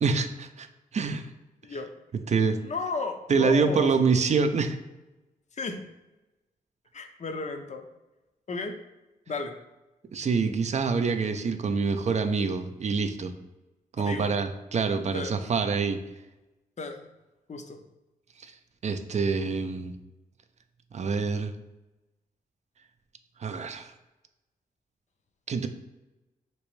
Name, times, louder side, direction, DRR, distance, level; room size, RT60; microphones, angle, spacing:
voice 1, 0.0-0.7 0.9-1.3 2.3-2.6 3.3-4.8 10.1-13.3 14.0-16.0 18.4-18.5 18.8-20.0 20.9-21.5 23.4-23.9 25.5-25.7, right 5 dB, 45° right, 8 dB, 0.4 m, -26 dB
voice 2, 2.6-3.9 5.6-5.8 6.9-7.8 8.5-8.7 9.3-9.5 14.0-14.3 15.1-15.3 16.8-17.1 17.5-17.8, left 3 dB, 50° left, 6 dB, 0.5 m, -33 dB
3.3 x 2.9 x 3.1 m, 1.0 s
cardioid pair, 60°, 16 cm